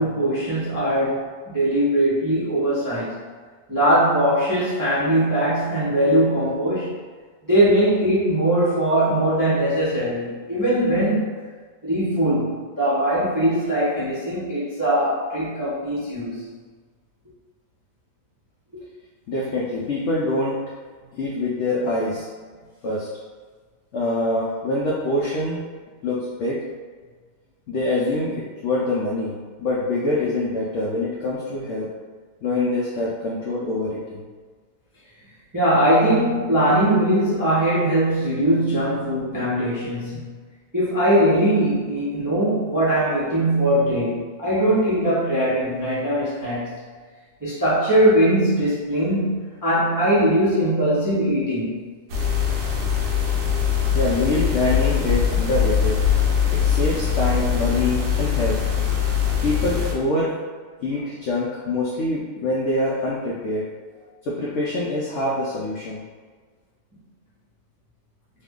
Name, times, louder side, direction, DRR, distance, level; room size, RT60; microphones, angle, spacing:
voice 1, 0.0-3.2 3.7-7.0 7.4-11.4 11.8-16.4 35.5-40.3 40.7-46.7 47.4-51.8, right 1 dB, 25° right, -10 dB, 0.4 m, -21 dB
voice 2, 19.3-20.7 21.1-22.3 22.8-23.1 23.9-25.7 26.0-26.6 27.7-31.9 32.4-34.2 53.9-56.0 56.5-58.6 59.4-60.3 60.8-63.7 64.2-66.0, left 2 dB, 75° left, -5 dB, 0.6 m, -25 dB
sound 1, 52.1-59.9, left 8 dB, 80° right, 1.2 m, -22 dB
3.2 x 2.1 x 3.5 m, 1.5 s
omnidirectional pair, 1.7 m